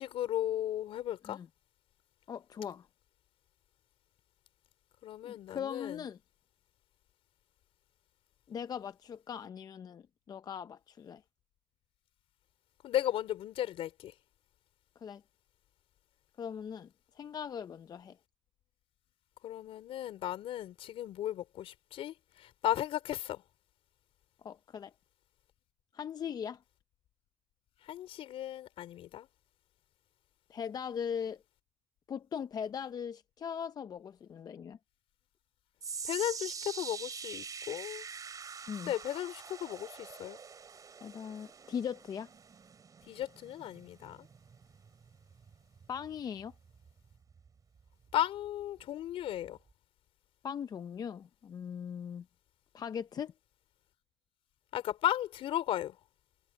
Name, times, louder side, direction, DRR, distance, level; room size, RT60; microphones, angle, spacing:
voice 1, 0.0-1.4 5.0-6.1 12.8-14.1 19.4-23.4 27.8-29.3 36.0-38.0 38.9-40.4 43.1-44.3 48.1-49.6 54.7-56.0, left 12 dB, 65° left, 4.2 m, -35 dB
voice 2, 2.3-2.9 5.2-6.2 8.5-11.2 15.0-15.2 16.4-16.9 17.1-18.2 24.4-24.9 25.9-26.6 30.5-31.4 32.1-34.8 38.7-38.9 41.0-42.3 45.9-46.5 50.4-52.2 52.7-53.3, left 7 dB, 40° left, 0.6 m, -40 dB
sound 1, 35.8-48.1 48.4-48.8 49.4-49.5, right 6 dB, 35° right, 5.5 m, -46 dB
cardioid pair, 105°, 10 cm